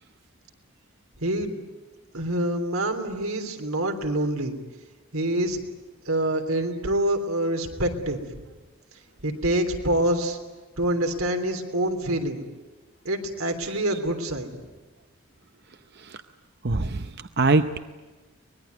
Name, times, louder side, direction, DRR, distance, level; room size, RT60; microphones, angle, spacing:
voice 1, 1.2-1.6 2.1-4.5 5.1-5.6 6.0-8.2 9.2-10.4 10.8-12.4 13.0-14.7, right 1 dB, 85° right, 5 dB, 3.3 m, -26 dB
voice 2, 16.6-17.8, right 3 dB, 50° right, 9 dB, 0.7 m, -24 dB
24.0 x 20.5 x 9.5 m, 1.3 s
head